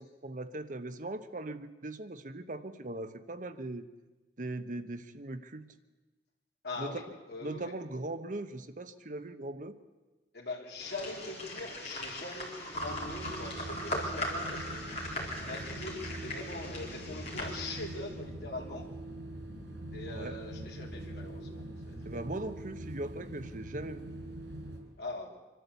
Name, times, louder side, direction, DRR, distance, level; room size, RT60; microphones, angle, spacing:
voice 1, 0.0-3.9 4.4-5.6 6.8-7.0 7.4-9.7 20.1-20.4 22.0-24.1, right 2 dB, 45° right, 10 dB, 1.0 m, -39 dB
voice 2, 6.6-7.7 10.3-14.8 15.4-18.9 19.9-22.1 25.0-25.3, left 2 dB, 65° left, 0 dB, 3.6 m, -42 dB
sound 1, 10.8-18.1, left 1 dB, 40° left, 4.2 m, -39 dB
sound 2, 12.7-24.8, right 1 dB, 90° right, 6.4 m, -43 dB
25.5 x 12.5 x 8.2 m, 1.2 s
head